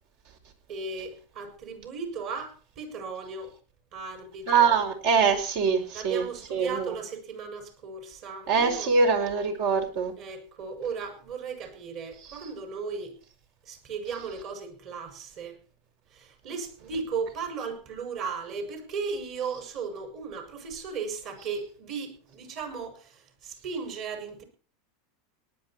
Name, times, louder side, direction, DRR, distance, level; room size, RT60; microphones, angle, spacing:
voice 1, 0.7-3.5 3.9-4.8 5.9-8.9 10.2-13.2 13.7-15.6 16.1-24.4, right 5 dB, 50° right, 5 dB, 6.4 m, -36 dB
voice 2, 4.5-6.9 8.5-10.1, right 5 dB, 65° right, 4 dB, 4.8 m, -24 dB
19.0 x 11.0 x 4.5 m, 0.37 s
hypercardioid pair, 105°, 0 cm